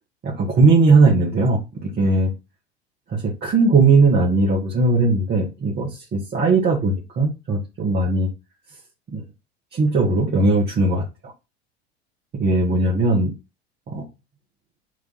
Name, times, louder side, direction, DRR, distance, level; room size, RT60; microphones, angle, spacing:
voice 1, 0.2-2.3 3.1-8.3 9.1-9.2 9.7-11.3 12.3-13.3 13.9-14.0, right 3 dB, 30° right, -3 dB, 1.8 m, -18 dB
6.3 x 3.4 x 4.7 m, 0.26 s
figure-of-eight pair, 75°, 32 cm